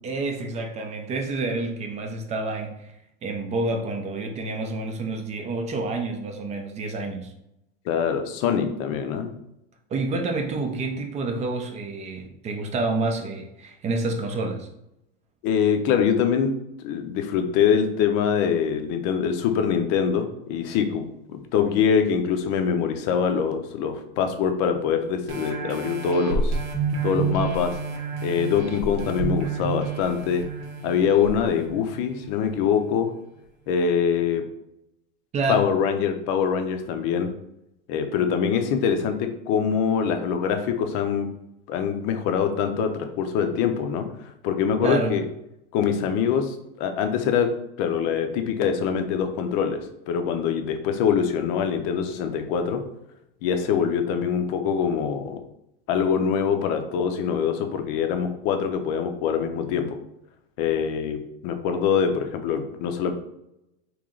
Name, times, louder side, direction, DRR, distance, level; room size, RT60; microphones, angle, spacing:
voice 1, 0.0-2.9 3.2-7.3 9.9-14.7 35.3-35.7 44.8-45.2, right 3 dB, 20° right, 4 dB, 0.5 m, -28 dB
voice 2, 7.9-9.3 15.4-16.5 16.8-26.6 27.0-27.7 28.2-30.4 30.8-33.1 33.7-34.4 35.5-37.3 37.9-41.3 41.7-44.1 44.4-45.2 45.7-47.5 47.8-52.8 53.4-55.4 55.9-60.0 60.6-63.1, left 7 dB, 50° left, 6 dB, 0.6 m, -24 dB
sound 1, 25.3-32.5 33.0-33.1, right 4 dB, 85° right, 1.0 m, -29 dB
3.2 x 3.0 x 3.7 m, 0.84 s
supercardioid pair, 140°, 30 cm